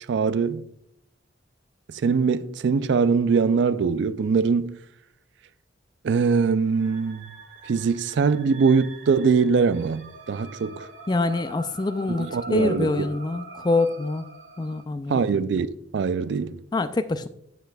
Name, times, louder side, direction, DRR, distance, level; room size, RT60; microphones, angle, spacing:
voice 1, 0.1-0.6 2.0-4.8 6.0-7.2 7.7-10.9 12.2-13.0 15.1-16.6, right 5 dB, 65° right, 0.3 m, -22 dB
sound 1, 6.7-14.8, right 2 dB, 85° right, 1.9 m, -43 dB
voice 2, 11.1-14.3 14.6-15.3 16.7-17.3, left 2 dB, 20° left, 0.3 m, -25 dB
9.1 x 7.8 x 2.3 m
head